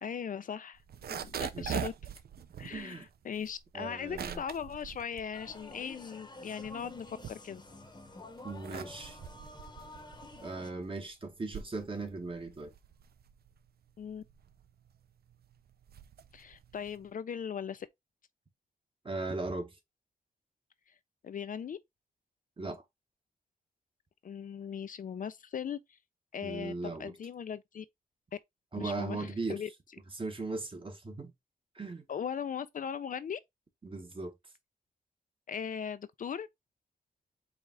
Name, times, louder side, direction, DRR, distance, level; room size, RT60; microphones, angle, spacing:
voice 1, 0.0-0.8 1.1-1.9 2.6-7.6 14.0-14.2 16.3-17.9 20.9-21.0 21.2-21.8 24.2-26.0 26.3-27.9 28.8-29.7 32.1-33.4 35.5-36.5, left 7 dB, 60° left, 0.4 m, -39 dB
sound 1, 0.8-6.1 6.4-7.9 8.3-17.1, right 8 dB, 80° right, 0.4 m, -43 dB
voice 2, 2.7-3.1 3.7-4.4 8.4-9.2 10.4-12.7 19.0-19.7 22.6-22.8 26.4-27.1 28.7-29.6 30.2-31.3 31.7-32.0 33.8-34.3, right 3 dB, 35° right, 1.1 m, -38 dB
sound 2, 5.3-10.7, left 2 dB, 25° left, 0.9 m, -49 dB
4.8 x 2.3 x 3.6 m
wide cardioid pair, 95°, 16 cm